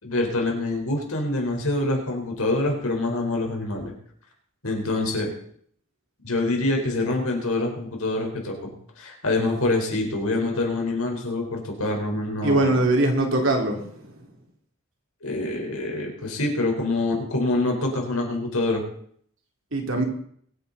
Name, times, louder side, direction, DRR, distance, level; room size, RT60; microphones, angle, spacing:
voice 1, 0.0-3.9 4.6-5.3 6.2-12.8 15.2-18.8, left 2 dB, 75° left, 1 dB, 4.3 m, -26 dB
voice 2, 12.4-14.0 19.7-20.0, right 2 dB, 60° right, 2 dB, 3.0 m, -22 dB
24.0 x 9.4 x 4.1 m, 0.62 s
head